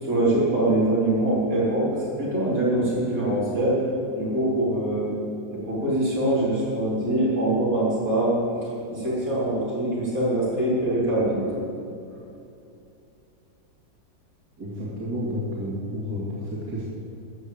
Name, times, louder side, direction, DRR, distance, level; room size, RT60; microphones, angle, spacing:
voice 1, 0.0-3.9 4.2-5.1 5.5-8.4 8.9-11.5, right 1 dB, 60° right, -7 dB, 4.4 m, -23 dB
voice 2, 14.6-16.8, equal, 85° right, -8 dB, 2.9 m, -31 dB
13.5 x 6.5 x 8.6 m, 2.7 s
omnidirectional pair, 1.7 m